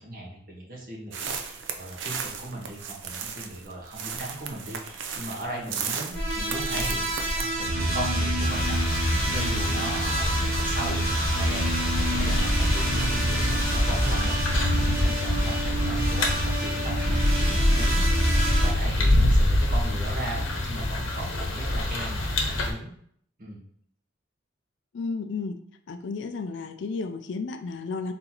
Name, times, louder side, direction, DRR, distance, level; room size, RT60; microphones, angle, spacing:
voice 1, 0.0-11.1 11.4-11.7 12.1-14.4 14.7-18.1 18.6-22.9 23.4-23.6, right 1 dB, 45° right, -3 dB, 1.3 m, -37 dB
sound 1, 1.1-7.5, right 6 dB, 65° right, 0.5 m, -35 dB
sound 2, 6.1-18.7, right 1 dB, 85° right, 1.5 m, -25 dB
sound 3, 8.4-22.7, left 2 dB, 80° left, 0.9 m, -27 dB
voice 2, 24.9-25.6 25.9-28.1, left 4 dB, 60° left, 8 dB, 0.4 m, -32 dB
4.0 x 3.9 x 2.9 m, 0.65 s
head